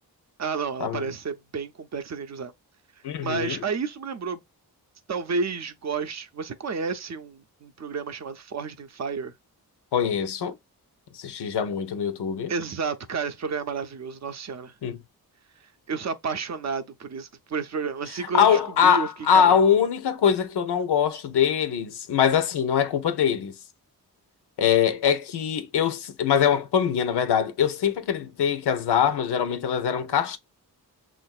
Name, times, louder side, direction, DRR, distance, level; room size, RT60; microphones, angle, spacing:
voice 1, 0.4-2.5 3.2-4.4 5.1-9.3 12.5-14.7 15.9-19.5, right 5 dB, 45° right, 0.5 m, -31 dB
voice 2, 3.0-3.6 9.9-10.5 11.1-12.5 14.8-15.0 18.3-23.5 24.6-30.4, left 8 dB, 90° left, 0.7 m, -23 dB
6.3 x 2.5 x 2.3 m
wide cardioid pair, 145°, 39 cm